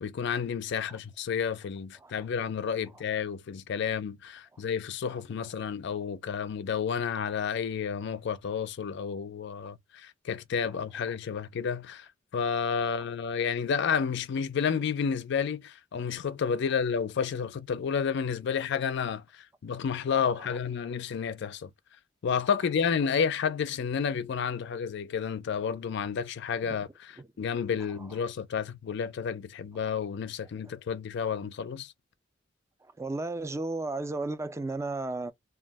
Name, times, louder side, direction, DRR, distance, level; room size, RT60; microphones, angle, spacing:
voice 1, 0.0-21.7 22.2-31.9, left 6 dB, 65° left, 0.4 m, -31 dB
voice 2, 20.1-20.6 26.7-26.8 28.0-28.1 33.0-35.3, right 2 dB, 15° right, 0.3 m, -34 dB
2.2 x 2.0 x 3.3 m
head